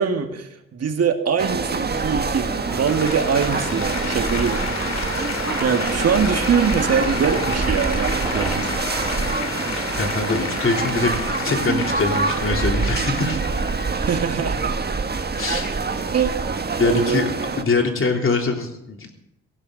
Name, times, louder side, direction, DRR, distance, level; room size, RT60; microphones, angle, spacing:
voice 1, 0.0-5.3 5.6-8.7 13.9-14.8 16.1-16.4 16.8-17.3, right 6 dB, 55° right, 5 dB, 2.0 m, -23 dB
sound 1, 1.4-17.6, right 4 dB, 30° right, 1.5 m, -25 dB
sound 2, 2.0-11.6, right 1 dB, 5° right, 2.4 m, -39 dB
Applause, 2.4-13.9, left 5 dB, 60° left, 2.7 m, -31 dB
voice 2, 10.0-13.4 15.4-16.1 16.8-17.2 17.6-19.2, left 3 dB, 45° left, 2 dB, 3.5 m, -23 dB
17.5 x 15.5 x 4.0 m, 0.85 s
supercardioid pair, 50°, 30 cm